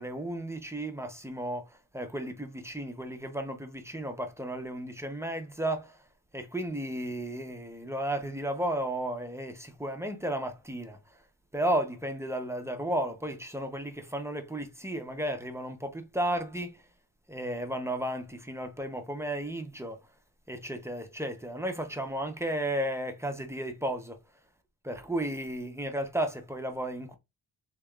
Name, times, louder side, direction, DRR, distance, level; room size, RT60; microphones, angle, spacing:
voice 1, 0.0-1.7 1.9-6.0 6.3-11.0 11.5-16.8 17.3-20.0 20.5-24.2 24.8-27.2, right 1 dB, 5° right, 0.6 m, -33 dB
3.6 x 3.3 x 2.3 m
wide cardioid pair, 95°, 49 cm